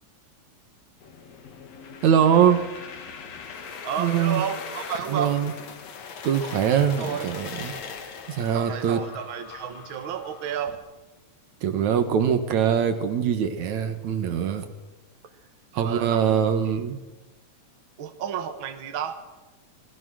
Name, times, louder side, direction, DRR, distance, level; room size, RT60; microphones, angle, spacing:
sound 1, 1.0-10.8, left 6 dB, 65° left, 2.8 m, -40 dB
voice 1, 2.0-2.6 4.0-4.4 5.1-5.5 6.2-7.7 8.3-9.0 11.6-14.7 15.7-17.0, right 8 dB, 70° right, 9 dB, 2.6 m, -22 dB
voice 2, 3.8-5.4 7.0-7.3 8.5-10.8 15.8-16.8 18.0-19.2, right 8 dB, 50° right, 7 dB, 1.9 m, -32 dB
24.5 x 19.5 x 6.3 m, 1.2 s
omnidirectional pair, 3.4 m